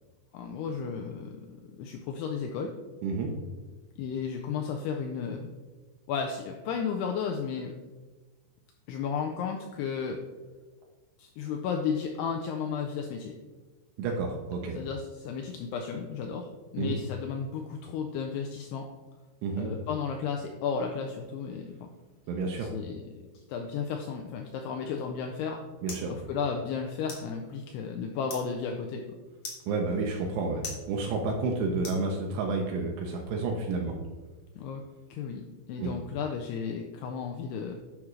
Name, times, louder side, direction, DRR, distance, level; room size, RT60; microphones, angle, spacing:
voice 1, 0.3-2.7 4.0-5.5 6.1-7.7 8.9-10.2 11.2-13.3 14.7-16.5 16.7-18.9 19.6-21.9 22.6-23.0 23.3-25.6 26.1-29.0 34.6-34.8 35.1-35.4 35.7-37.7, left 6 dB, 85° left, 2 dB, 2.3 m, -33 dB
voice 2, 14.0-14.8 16.8-16.9 19.4-19.7 22.3-22.7 25.8-26.1 29.7-33.9 35.8-35.9, right 3 dB, 80° right, 0 dB, 2.8 m, -30 dB
sound 1, 25.1-32.6, left 3 dB, 65° left, 1.5 m, -47 dB
11.0 x 4.9 x 3.1 m, 1.3 s
omnidirectional pair, 5.2 m